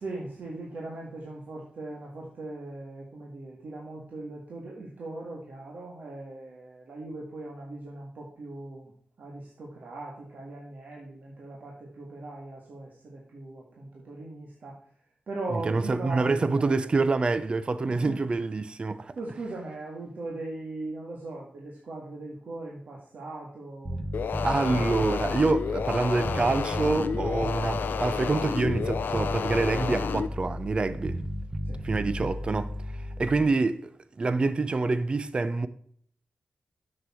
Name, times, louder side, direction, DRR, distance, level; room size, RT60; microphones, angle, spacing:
voice 1, 0.0-8.9 9.2-14.8 15.3-16.9 17.9-18.2 19.2-24.1 31.7-31.8, right 2 dB, 60° right, 1.8 m, -39 dB
voice 2, 15.7-19.1 24.4-31.2 31.8-33.9 34.2-35.7, right 3 dB, 30° right, 0.5 m, -26 dB
Bass guitar, 23.8-33.4, equal, 15° right, 1.0 m, -34 dB
sound 1, 24.1-30.3, left 6 dB, 90° left, 0.6 m, -31 dB
7.9 x 6.9 x 4.4 m
wide cardioid pair, 175°, 3 cm